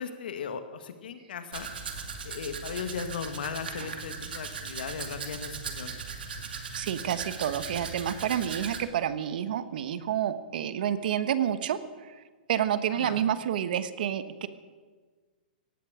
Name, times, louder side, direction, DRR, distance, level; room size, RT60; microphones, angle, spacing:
voice 1, 0.0-1.7 2.2-5.9 12.9-13.3, left 6 dB, 75° left, 8 dB, 1.9 m, -37 dB
Domestic sounds home sounds, 1.5-8.8, right 5 dB, 85° right, 2.5 m, -38 dB
voice 2, 6.8-11.8 12.5-14.5, right 10 dB, 65° right, 12 dB, 1.3 m, -29 dB
18.0 x 15.0 x 5.1 m, 1.5 s
hypercardioid pair, 130°, 5 cm